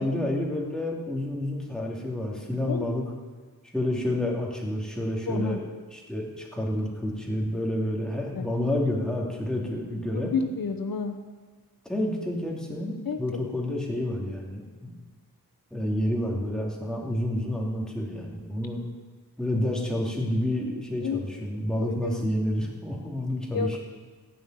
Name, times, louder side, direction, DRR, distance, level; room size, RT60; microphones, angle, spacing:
voice 1, 0.0-3.0 3.7-5.6 5.9-10.3 11.8-14.9 15.7-18.8 19.4-23.8, left 1 dB, ahead, -2 dB, 2.7 m, -29 dB
voice 2, 5.3-5.6 8.4-8.5 10.1-11.2 13.1-13.2 21.0-21.2 21.8-22.1 23.5-23.8, left 5 dB, 65° left, 6 dB, 1.0 m, -30 dB
16.0 x 5.5 x 9.3 m, 1.5 s
wide cardioid pair, 110°, 37 cm